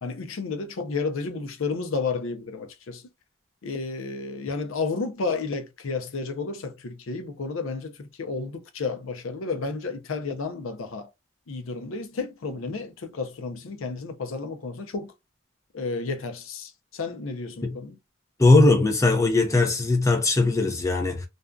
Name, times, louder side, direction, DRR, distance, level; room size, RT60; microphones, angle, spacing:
voice 1, 0.0-3.0 3.6-11.1 11.5-15.1 15.7-18.0, left 4 dB, 75° left, 0.5 m, -32 dB
voice 2, 18.4-21.2, left 2 dB, 15° left, 0.5 m, -19 dB
2.5 x 2.3 x 2.2 m
head